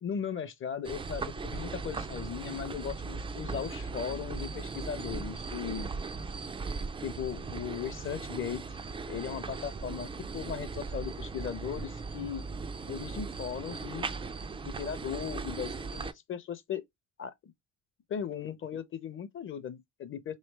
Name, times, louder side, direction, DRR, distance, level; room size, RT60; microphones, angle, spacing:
voice 1, 0.0-5.9 7.0-8.6 9.1-12.4 12.9-16.8 17.2-17.3 18.1-20.3, left 8 dB, 30° left, 0.6 m, -37 dB
sound 1, 0.8-16.1, right 4 dB, 15° right, 0.3 m, -38 dB
3.2 x 2.9 x 3.2 m
hypercardioid pair, 70°, 39 cm